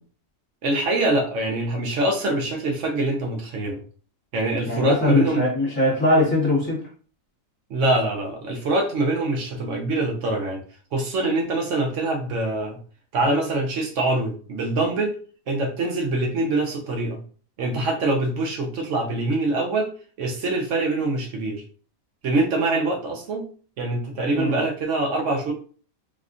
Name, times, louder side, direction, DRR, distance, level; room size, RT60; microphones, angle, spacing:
voice 1, 0.6-3.8 4.3-5.4 7.7-10.6 10.9-12.8 13.1-15.2 15.5-17.2 17.6-19.9 20.2-21.6 22.2-23.5 23.8-25.5, right 2 dB, 65° right, 1 dB, 0.9 m, -24 dB
voice 2, 4.7-6.8 24.3-24.6, left 2 dB, 35° left, -4 dB, 1.2 m, -21 dB
3.4 x 2.5 x 2.4 m, 0.41 s
omnidirectional pair, 1.4 m